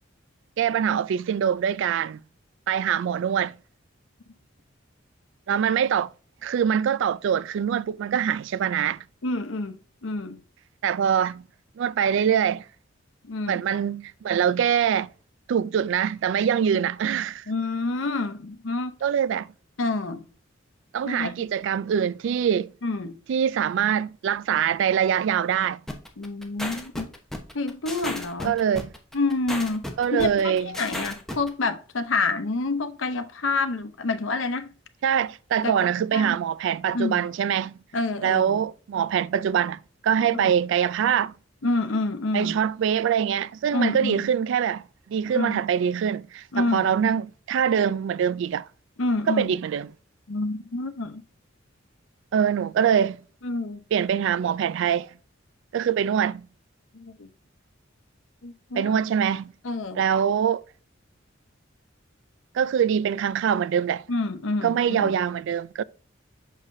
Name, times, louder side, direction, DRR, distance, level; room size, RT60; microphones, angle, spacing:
voice 1, 0.6-2.2 2.7-3.5 5.5-6.1 6.4-9.0 10.8-11.4 11.8-12.6 13.5-15.1 15.5-17.4 19.0-19.5 20.9-22.7 23.3-25.8 28.4-28.9 30.0-30.7 35.0-37.7 38.2-41.3 42.3-44.8 45.1-48.7 49.3-49.9 52.3-53.2 53.9-55.1 55.7-56.5 58.7-59.5 59.9-60.6 62.5-64.0 64.6-65.8, right 8 dB, 65° right, 0.3 m, -24 dB
voice 2, 9.2-10.4 13.2-13.6 17.5-19.0 19.8-20.3 21.0-21.3 22.8-23.2 26.2-27.1 27.5-28.6 29.1-34.7 35.6-35.7 36.1-36.4 36.9-37.2 37.9-38.6 40.3-40.5 41.6-42.6 43.7-44.3 45.3-45.6 46.5-46.9 49.0-49.5 50.3-51.2 53.4-53.8 56.9-57.3 58.4-58.9 59.6-60.0 64.1-65.1, left 3 dB, 75° left, 0.8 m, -28 dB
sound 1, 25.9-31.5, left 1 dB, ahead, 1.0 m, -34 dB
6.4 x 5.6 x 2.6 m
head